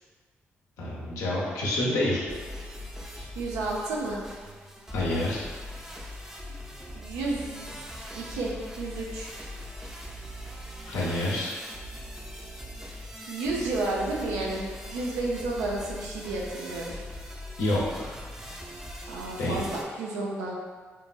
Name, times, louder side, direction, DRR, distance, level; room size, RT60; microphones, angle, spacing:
voice 1, 0.8-2.2 3.1-3.3 4.9-5.5 10.9-11.5 17.6-18.1 19.4-19.6, left 1 dB, 75° left, -5 dB, 0.7 m, -28 dB
sound 1, 2.3-19.8, equal, 10° right, 0.5 m, -41 dB
voice 2, 3.4-4.2 6.9-7.8 8.1-9.3 13.3-16.9 19.1-20.6, right 2 dB, 80° right, -3 dB, 0.5 m, -31 dB
3.2 x 2.2 x 2.4 m, 1.5 s
hypercardioid pair, 45°, 6 cm